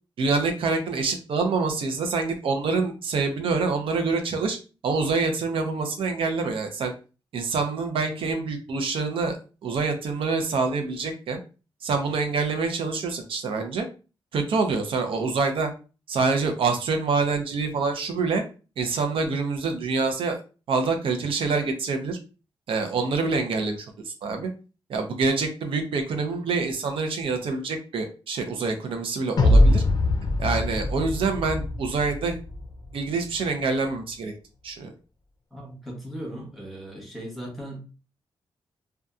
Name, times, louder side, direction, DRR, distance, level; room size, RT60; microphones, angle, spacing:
voice 1, 0.2-4.6 4.8-6.9 7.3-11.4 11.8-13.9 14.3-15.7 16.1-18.4 18.8-20.4 20.7-22.2 22.7-24.5 24.9-29.8 30.4-32.4 32.9-34.3 34.6-34.9, right 4 dB, 70° right, 5 dB, 0.6 m, -26 dB
sound 1, 29.4-32.7, left 1 dB, 45° left, 0.5 m, -21 dB
voice 2, 35.5-37.8, right 1 dB, ahead, -1 dB, 0.9 m, -37 dB
2.7 x 2.2 x 2.3 m, 0.33 s
wide cardioid pair, 150°, 9 cm